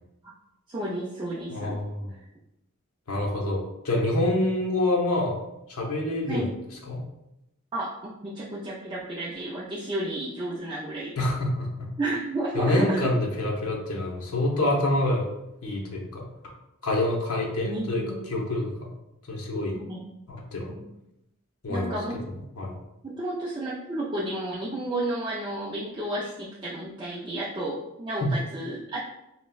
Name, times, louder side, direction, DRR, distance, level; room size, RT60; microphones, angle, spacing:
voice 1, 0.7-1.8 6.3-6.5 7.7-8.0 8.2-11.2 12.0-13.1 17.6-18.2 19.7-20.1 20.7-20.9 21.7-22.1 23.0-29.0, right 1 dB, 20° right, -7 dB, 0.3 m, -32 dB
voice 2, 1.5-2.1 3.1-5.4 5.7-6.4 6.9-7.0 11.2-11.9 12.5-15.3 15.6-16.3 16.8-18.9 19.3-19.8 20.3-20.7 21.6-22.0 22.6-22.8 28.2-28.3, left 1 dB, 80° left, -1 dB, 0.7 m, -26 dB
4.0 x 2.1 x 2.3 m, 0.86 s
head